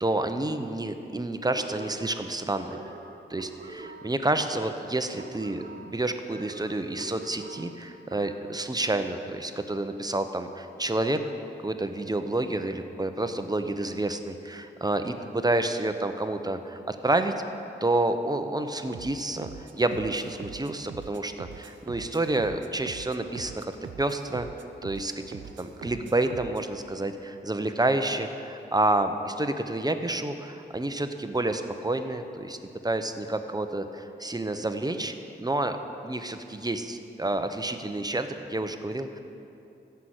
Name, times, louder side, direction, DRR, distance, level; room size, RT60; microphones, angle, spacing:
voice 1, 0.0-2.8 3.3-11.2 11.6-17.3 17.8-23.7 24.0-24.5 24.8-35.8 36.0-39.2, right 2 dB, 20° right, 8 dB, 0.8 m, -29 dB
sound 1, 1.6-8.6, right 3 dB, 55° right, 1.2 m, -44 dB
sound 2, 18.9-26.7, right 7 dB, 90° right, 0.6 m, -44 dB
14.5 x 5.8 x 7.9 m, 2.8 s
cardioid pair, 60°, 19 cm